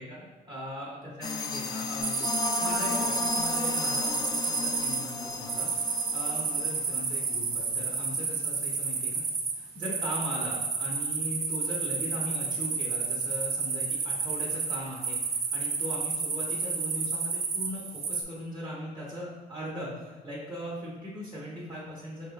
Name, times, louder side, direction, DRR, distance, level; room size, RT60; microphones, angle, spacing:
voice 1, 0.0-2.3 2.6-9.2 9.5-22.3, equal, 20° right, -6 dB, 1.2 m, -39 dB
sound 1, 1.2-7.5, left 3 dB, 25° left, 0.3 m, -33 dB
sound 2, 2.0-18.2, right 4 dB, 40° right, 0.7 m, -31 dB
5.4 x 2.7 x 2.9 m, 1.4 s
cardioid pair, 110°, 17 cm